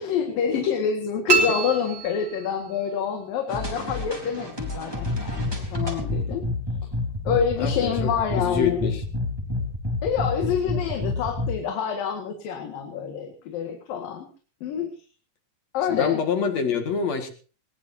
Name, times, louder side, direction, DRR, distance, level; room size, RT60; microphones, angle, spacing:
voice 1, 0.0-6.4 7.3-8.8 10.0-14.3 14.6-14.9 15.7-16.2, left 7 dB, 85° left, 4 dB, 3.6 m, -27 dB
sound 1, 1.3-2.8, right 3 dB, 35° right, 3.4 m, -25 dB
sound 2, 3.5-11.5, left 2 dB, 5° right, 3.4 m, -29 dB
voice 2, 7.6-9.0 15.9-17.3, left 6 dB, 55° left, 6 dB, 3.0 m, -26 dB
20.5 x 19.5 x 2.8 m, 0.38 s
omnidirectional pair, 3.9 m